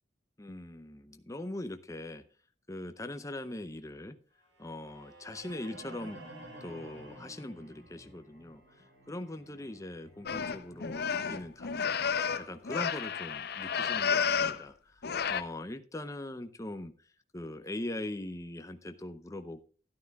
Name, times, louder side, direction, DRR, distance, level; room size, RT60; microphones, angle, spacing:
voice 1, 0.4-2.2 2.7-4.2 4.6-6.2 6.6-12.0 12.4-16.9 17.3-19.6, left 1 dB, 15° left, 9 dB, 0.7 m, -41 dB
sound 1, 4.5-12.5, right 1 dB, 70° right, 4.2 m, -52 dB
sound 2, 10.3-14.6 15.0-15.4, left 6 dB, 55° left, 0.6 m, -31 dB
13.0 x 11.5 x 2.3 m, 0.37 s
head